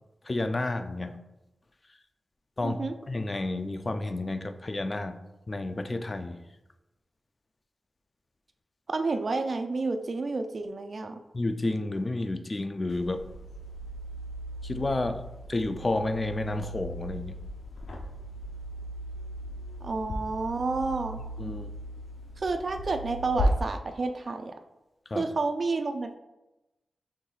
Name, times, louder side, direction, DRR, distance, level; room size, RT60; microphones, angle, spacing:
voice 1, 0.3-1.1 2.6-2.8 3.1-5.2 5.5-6.4 11.3-13.2 14.6-17.4 21.4-21.7 25.1-25.2, left 2 dB, 35° left, 7 dB, 0.4 m, -30 dB
voice 2, 2.6-3.0 8.9-11.2 19.8-21.2 22.4-24.5 25.2-26.1, right 3 dB, 55° right, 6 dB, 0.4 m, -30 dB
sound 1, 12.9-23.5, equal, 85° left, 0.6 m, -36 dB
5.4 x 3.7 x 2.4 m, 0.99 s
cardioid pair, 75°, 0 cm